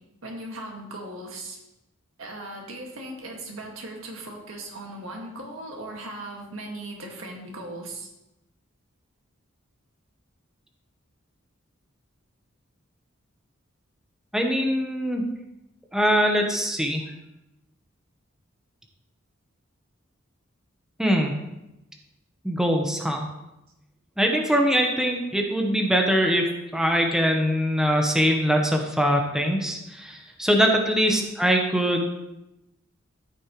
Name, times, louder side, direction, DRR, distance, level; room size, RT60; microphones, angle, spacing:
voice 1, 0.2-1.6 2.2-8.1 31.0-31.2, right 1 dB, 85° right, 0 dB, 1.8 m, -38 dB
voice 2, 14.3-15.2 15.9-17.0 21.0-21.4 22.4-23.3 24.2-32.0, equal, 5° right, 1 dB, 0.9 m, -22 dB
13.5 x 6.2 x 3.0 m, 0.92 s
head